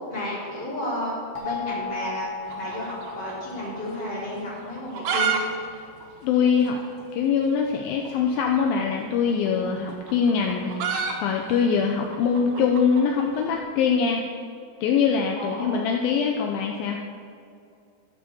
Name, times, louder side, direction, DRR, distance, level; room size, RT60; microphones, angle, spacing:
voice 1, 0.1-2.3 2.6-5.4 15.4-15.8, left 1 dB, 25° left, -7 dB, 4.1 m, -32 dB
sound 1, 1.4-6.1, left 6 dB, 55° left, 3.7 m, -37 dB
sound 2, 2.4-3.8 4.0-4.1 4.7-5.4 5.7-5.8 6.0-6.1 6.7-6.8 8.0-8.2 9.3-13.5, right 6 dB, 75° right, 3.1 m, -29 dB
voice 2, 6.2-6.8 7.1-14.2 14.8-17.0, left 6 dB, 80° left, 2 dB, 2.4 m, -23 dB
13.5 x 7.2 x 6.9 m, 2.5 s
omnidirectional pair, 4.4 m